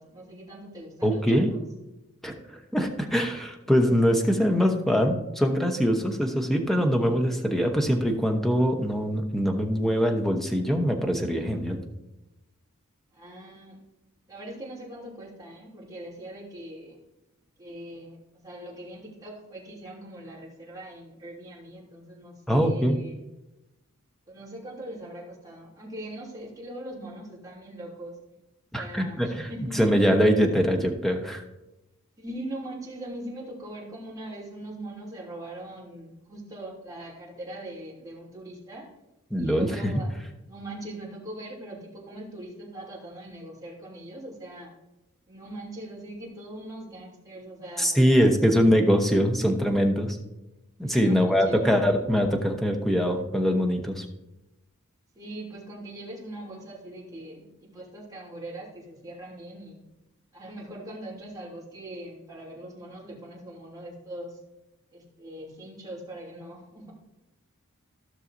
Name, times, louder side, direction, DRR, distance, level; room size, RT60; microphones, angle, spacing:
voice 1, 0.0-1.6 13.1-13.8 14.3-16.9 17.6-23.2 24.3-28.2 28.7-29.9 32.2-38.9 39.4-40.1 40.5-44.7 45.3-48.7 50.8-51.6 55.1-59.8 60.3-64.4 64.9-66.9, right 1 dB, 15° right, -5 dB, 2.9 m, -41 dB
voice 2, 1.0-1.5 2.2-11.8 22.5-23.0 28.7-31.4 39.3-39.9 47.8-50.2 50.8-54.1, equal, ahead, 4 dB, 0.9 m, -23 dB
15.5 x 6.4 x 2.7 m, 0.97 s
head